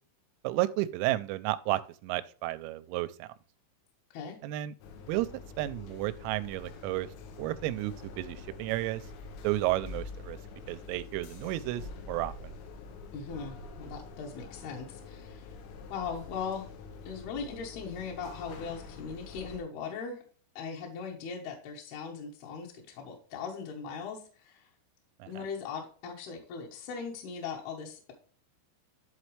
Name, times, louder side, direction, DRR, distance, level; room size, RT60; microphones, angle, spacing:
voice 1, 0.4-3.3 4.4-4.7 5.1-5.3 5.6-7.1 7.4-9.0 9.4-10.4 10.7-12.5 25.2-25.4, right 16 dB, 85° right, 3.2 m, -32 dB
sound 1, 4.8-19.6, left 4 dB, 85° left, 3.6 m, -46 dB
voice 2, 13.1-15.5 15.9-16.7 17.1-20.2 20.6-24.7 25.3-28.1, left 6 dB, 70° left, 2.6 m, -39 dB
11.0 x 4.1 x 3.2 m
omnidirectional pair, 5.9 m